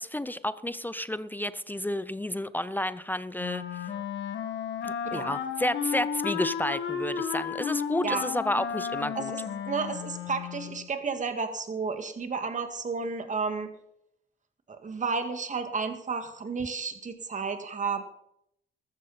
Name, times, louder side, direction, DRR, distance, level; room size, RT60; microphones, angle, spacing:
voice 1, 0.0-3.6 4.8-9.3, left 1 dB, 10° left, 15 dB, 0.5 m, -31 dB
Wind instrument woodwind instrument, 3.4-10.9, left 7 dB, 65° left, 2.0 m, -33 dB
voice 2, 9.7-13.7 14.8-18.0, right 5 dB, 40° right, 7 dB, 2.0 m, -32 dB
13.5 x 13.5 x 4.2 m, 0.76 s
cardioid pair, 90°, 20 cm